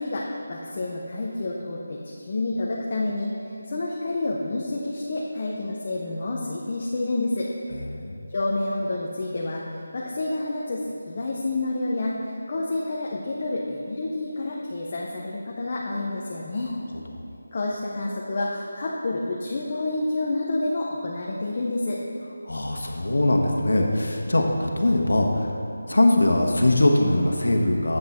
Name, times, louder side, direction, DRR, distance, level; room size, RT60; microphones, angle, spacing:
voice 1, 0.0-2.0 2.3-3.3 3.7-7.5 8.3-9.6 9.9-12.2 12.5-16.7 17.5-22.0, left 2 dB, 25° left, -3 dB, 0.5 m, -28 dB
voice 2, 7.7-8.2 16.9-17.0 22.5-25.5 25.9-28.0, left 1 dB, 85° left, 1 dB, 1.1 m, -21 dB
8.2 x 7.6 x 4.2 m, 2.6 s
figure-of-eight pair, 180°, 0 cm